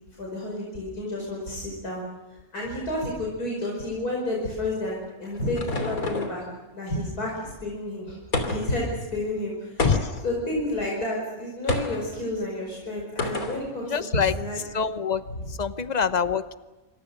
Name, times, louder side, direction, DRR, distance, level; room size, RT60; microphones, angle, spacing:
voice 1, 0.2-2.0 2.3-6.5 6.7-8.2 8.5-9.9 10.2-14.6, left 1 dB, 85° left, -2 dB, 5.7 m, -30 dB
sound 1, 4.9-6.5 8.3-8.8 9.8-10.3 11.7-12.1 13.2-13.6, left 2 dB, 70° left, 3.5 m, -28 dB
voice 2, 9.8-10.2 13.9-14.4 14.7-16.5, left 6 dB, 35° left, 12 dB, 0.8 m, -26 dB
27.0 x 26.0 x 6.6 m, 1.1 s
omnidirectional pair, 1.6 m